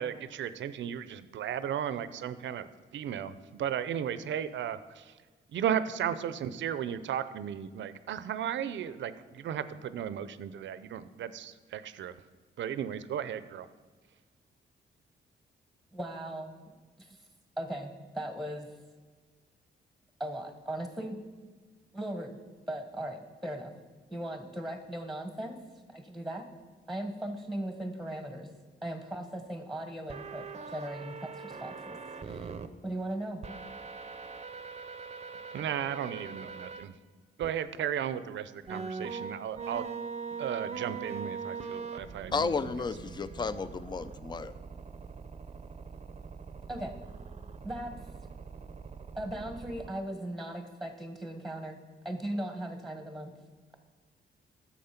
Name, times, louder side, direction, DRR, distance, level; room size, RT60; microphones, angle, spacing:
voice 1, 0.0-5.1 5.5-12.1 12.6-13.7 35.5-36.9 37.4-39.9 40.4-42.9, right 9 dB, 75° right, 14 dB, 0.6 m, -35 dB
voice 2, 15.9-16.5 17.0-17.2 17.6-18.7 20.2-21.2 21.9-22.4 22.7-23.7 24.1-25.6 25.9-26.5 26.9-28.5 28.8-32.5 32.8-33.5 46.7-47.0 47.6-47.9 49.2-51.8 52.0-53.3, right 1 dB, ahead, 7 dB, 1.2 m, -38 dB
sound 1, 30.1-32.7 33.4-36.8 37.4-37.5 38.7-49.9, right 5 dB, 35° right, 0.6 m, -42 dB
voice 3, 42.3-44.5, left 4 dB, 25° left, 14 dB, 0.4 m, -32 dB
10.5 x 7.3 x 5.8 m, 1.4 s
cardioid pair, 110°, 19 cm